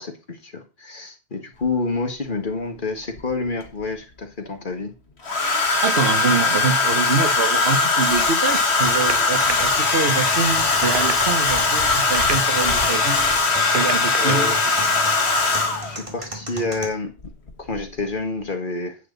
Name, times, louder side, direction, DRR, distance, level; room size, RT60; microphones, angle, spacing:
voice 1, 0.0-4.9 14.2-14.6 15.8-17.1 17.6-19.0, left 3 dB, 50° left, 1.9 m, -28 dB
Domestic sounds home sounds, 1.6-1.7 3.2-3.8 5.2-16.0 17.2-17.5 17.8-18.1, left 3 dB, 85° left, 1.8 m, -20 dB
voice 2, 5.8-13.3 13.7-14.6, right 5 dB, 75° right, 1.4 m, -25 dB
sound 1, 8.8-9.5 10.6-11.2 11.9-12.8 13.5-14.3 15.5-15.7, right 6 dB, 55° right, 1.0 m, -31 dB
sound 2, 8.9-16.9, right 1 dB, 30° right, 2.2 m, -37 dB
9.8 x 8.7 x 4.0 m
omnidirectional pair, 1.1 m